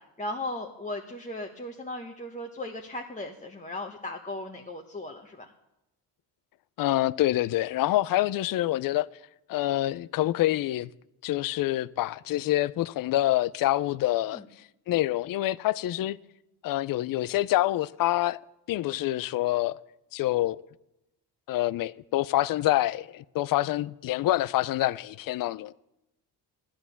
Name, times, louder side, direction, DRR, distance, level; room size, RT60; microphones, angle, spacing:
voice 1, 0.0-5.5 14.3-14.4, left 1 dB, 15° left, 1.1 m, -37 dB
voice 2, 6.8-9.1 9.5-10.9 11.2-14.4 14.9-16.2 16.6-18.4 18.7-19.8 20.1-20.6 21.5-25.7, left 15 dB, 50° left, 0.5 m, -26 dB
14.5 x 11.5 x 7.0 m
cardioid pair, 125°, 44 cm